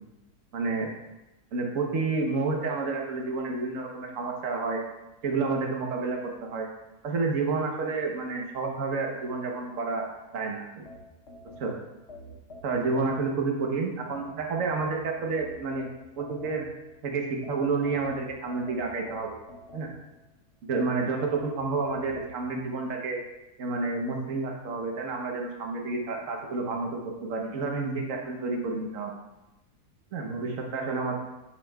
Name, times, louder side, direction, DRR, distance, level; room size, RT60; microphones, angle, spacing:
voice 1, 0.5-0.9 1.5-4.8 5.2-6.7 7.0-10.0 10.3-10.9 11.6-11.7 12.6-15.9 16.2-16.7 17.0-19.4 19.7-19.9 20.6-23.2 23.6-29.2 30.1-31.1, right 4 dB, 55° right, 1 dB, 1.4 m, -30 dB
sound 1, 10.9-13.6 14.1-16.9 17.4-20.2 20.7-22.4, left 1 dB, 45° left, 1.1 m, -47 dB
11.0 x 6.3 x 2.4 m, 0.97 s
omnidirectional pair, 1.7 m